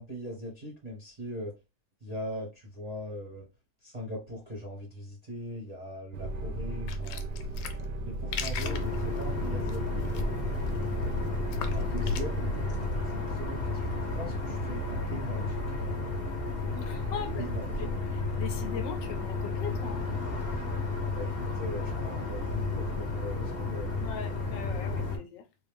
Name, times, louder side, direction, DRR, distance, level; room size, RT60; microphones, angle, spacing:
voice 1, 0.0-1.5 2.0-3.4 3.8-7.2 8.0-10.2 11.7-12.6 13.0-15.6 17.4-17.9 21.1-23.9, equal, 30° right, 0.8 m, -40 dB
sound 1, 6.1-13.1, right 2 dB, 75° right, 1.2 m, -35 dB
sound 2, 6.9-12.2, left 4 dB, 90° left, 1.3 m, -37 dB
sound 3, 8.6-25.2, left 3 dB, 40° left, 0.9 m, -32 dB
voice 2, 16.7-17.5 17.8-20.1 24.0-25.4, left 7 dB, 75° left, 1.2 m, -40 dB
3.8 x 2.4 x 3.4 m
omnidirectional pair, 2.1 m